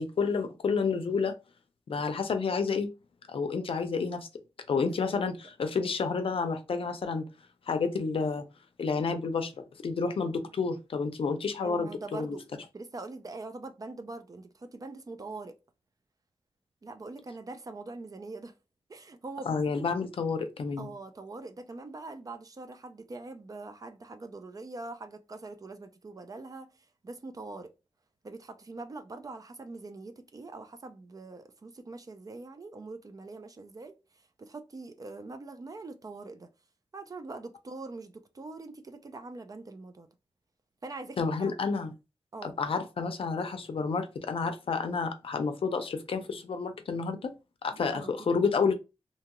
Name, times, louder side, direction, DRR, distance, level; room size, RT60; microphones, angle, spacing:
voice 1, 0.0-1.4 1.9-2.9 3.3-4.3 4.7-7.2 7.7-8.4 8.8-9.5 9.8-12.4 19.5-20.9 41.2-41.9 42.4-47.3 47.6-48.7, left 5 dB, 65° left, 0.5 m, -30 dB
voice 2, 4.8-5.2 10.2-10.5 11.6-12.4 12.7-15.6 16.8-18.6 18.9-19.6 20.8-27.7 28.2-36.5 36.9-40.1 40.8-41.5 42.3-42.6 47.7-48.3, right 3 dB, 35° right, 0.4 m, -43 dB
2.8 x 2.3 x 2.9 m
wide cardioid pair, 115°, 10 cm